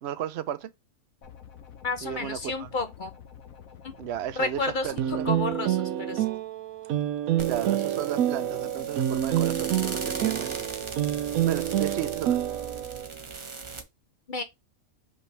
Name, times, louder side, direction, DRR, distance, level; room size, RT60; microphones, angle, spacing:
voice 1, 0.0-0.7 2.0-2.7 4.0-5.3 7.4-10.6 11.4-12.4, right 11 dB, 60° right, 0.8 m, -34 dB
sound 1, 1.2-5.6, left 8 dB, 75° left, 1.4 m, -48 dB
voice 2, 1.8-3.1 4.4-6.2 14.3-14.4, left 3 dB, 50° left, 0.6 m, -31 dB
sound 2, 5.0-13.1, right 11 dB, 90° right, 1.1 m, -28 dB
sound 3, 7.4-13.8, right 6 dB, 25° right, 0.7 m, -36 dB
5.4 x 5.3 x 3.3 m
omnidirectional pair, 1.5 m